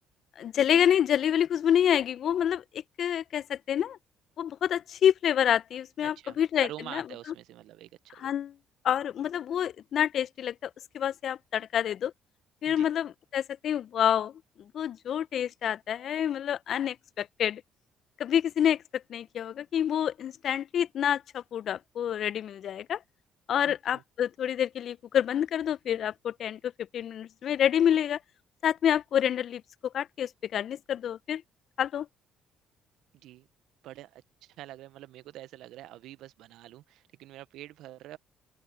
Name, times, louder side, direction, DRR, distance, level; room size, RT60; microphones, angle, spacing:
voice 1, 0.4-4.0 4.4-7.0 8.2-8.5 8.8-12.1 12.6-14.3 14.7-17.6 18.2-23.0 23.5-28.2 28.6-29.6 29.9-31.4 31.8-32.1, left 9 dB, 55° left, 1.0 m, -28 dB
voice 2, 6.0-8.3 12.6-12.9 23.6-24.0 33.1-33.5 33.8-38.2, right 14 dB, 70° right, 1.4 m, -46 dB
open air
hypercardioid pair, 50°, 0 cm